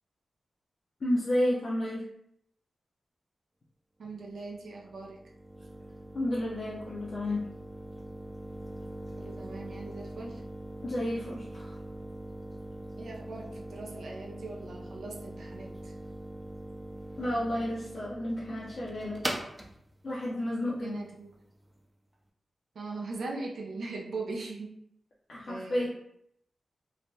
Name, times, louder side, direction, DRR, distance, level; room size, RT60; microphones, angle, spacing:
voice 1, 1.0-2.0 6.1-7.4 10.8-11.7 17.2-19.2 20.0-21.0 25.3-25.9, left 1 dB, 55° left, -7 dB, 0.6 m, -31 dB
voice 2, 4.0-5.2 9.2-10.4 13.0-15.9 20.8-21.3 22.7-24.8 25.5-25.9, right 3 dB, 80° right, -1 dB, 0.4 m, -40 dB
sound 1, 4.1-21.8, right 1 dB, 10° right, 0.4 m, -42 dB
3.2 x 2.2 x 2.6 m, 0.73 s
wide cardioid pair, 85°, 0 cm